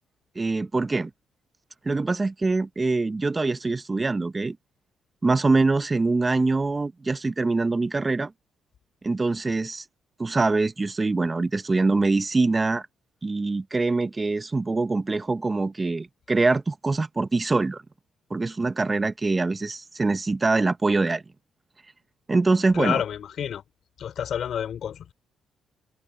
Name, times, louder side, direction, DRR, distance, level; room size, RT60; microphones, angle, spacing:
voice 1, 0.3-1.1 1.8-4.6 5.2-8.3 9.0-9.8 10.2-12.8 13.2-17.8 18.3-21.2 22.3-23.0, right 3 dB, 25° right, 1.1 m, -24 dB
voice 2, 22.7-23.6 24.0-25.1, left 9 dB, 65° left, 3.5 m, -29 dB
cardioid pair, 90°, 0 cm